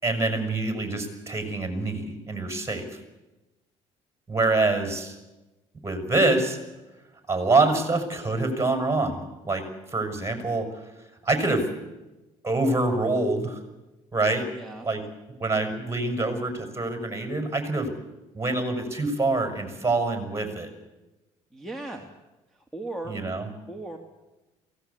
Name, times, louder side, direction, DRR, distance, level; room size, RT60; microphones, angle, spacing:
voice 1, 0.0-3.0 4.3-5.2 5.8-6.6 7.3-9.6 9.9-10.7 11.2-11.7 12.4-13.6 14.1-14.5 14.8-15.0 15.4-17.9 18.3-20.7 23.1-23.5, right 2 dB, 20° right, 6 dB, 5.9 m, -25 dB
voice 2, 14.5-14.9 21.5-22.1 22.5-23.2 23.7-24.0, right 2 dB, 5° left, 4 dB, 2.9 m, -37 dB
23.0 x 17.5 x 8.5 m, 1.1 s
supercardioid pair, 80°, 14 cm